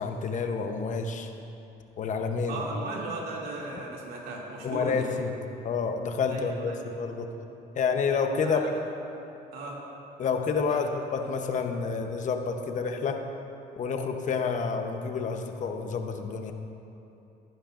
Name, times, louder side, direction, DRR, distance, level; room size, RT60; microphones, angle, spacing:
voice 1, 0.0-1.3 2.0-2.6 4.6-5.3 5.6-7.3 7.8-8.6 10.2-13.3 13.8-16.5, left 5 dB, 45° left, 5 dB, 0.9 m, -29 dB
voice 2, 2.5-5.1 6.3-6.8 8.4-8.7 9.5-9.8 10.7-10.8, right 2 dB, 70° right, -3 dB, 2.4 m, -36 dB
15.0 x 11.5 x 2.5 m, 2.8 s
cardioid pair, 110°, 17 cm